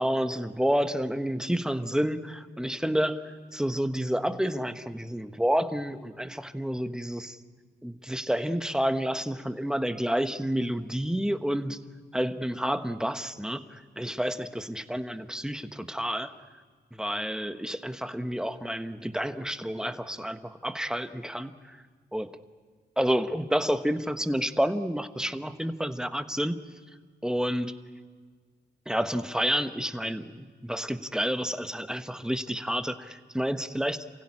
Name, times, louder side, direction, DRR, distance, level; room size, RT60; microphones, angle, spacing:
voice 1, 0.0-7.4 7.8-11.8 12.1-16.3 16.9-21.8 22.1-22.4 23.0-26.6 27.2-27.7 28.9-34.0, equal, 5° right, 9 dB, 1.2 m, -29 dB
29.0 x 16.5 x 9.9 m, 1.5 s
cardioid pair, 90°, 19 cm